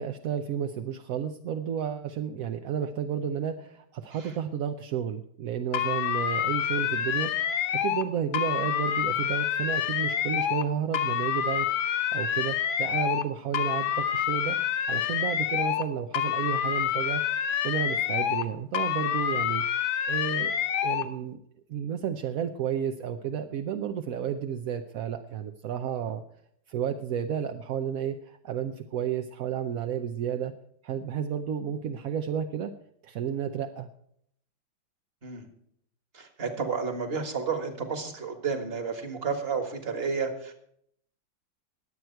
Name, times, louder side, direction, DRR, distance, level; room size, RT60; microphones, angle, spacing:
voice 1, 0.0-14.6 14.9-19.6 20.1-20.5 20.8-21.4 21.7-26.2 26.7-30.5 30.8-32.7 33.0-33.9, right 8 dB, 65° right, 6 dB, 0.9 m, -32 dB
sound 1, 5.7-8.1 8.3-10.7 10.9-13.3 13.5-15.9 16.1-18.5 18.7-21.1, left 9 dB, 85° left, 1.6 m, -27 dB
voice 2, 36.1-40.5, right 5 dB, 30° right, 7 dB, 1.7 m, -31 dB
21.0 x 7.9 x 4.5 m, 0.70 s
omnidirectional pair, 2.1 m